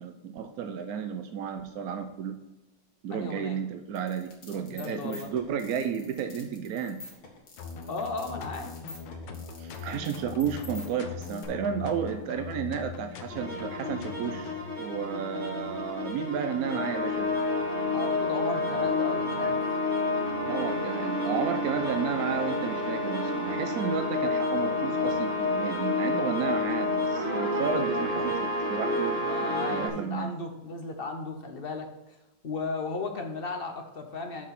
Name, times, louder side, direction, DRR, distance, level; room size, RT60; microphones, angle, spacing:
voice 1, 0.0-2.4 3.0-7.0 9.6-17.3 20.5-30.3, right 7 dB, 75° right, 7 dB, 0.8 m, -32 dB
voice 2, 3.1-3.6 4.7-5.3 7.9-8.7 17.9-19.6 29.2-32.2 32.4-34.5, left 3 dB, 40° left, 4 dB, 0.8 m, -35 dB
sound 1, 4.0-11.5, left 3 dB, 70° left, 2.8 m, -48 dB
sound 2, 7.6-14.6, left 6 dB, 85° left, 1.9 m, -41 dB
sound 3, 13.3-29.9, left 2 dB, 25° right, 2.4 m, -29 dB
7.1 x 6.1 x 5.9 m, 0.99 s
omnidirectional pair, 2.4 m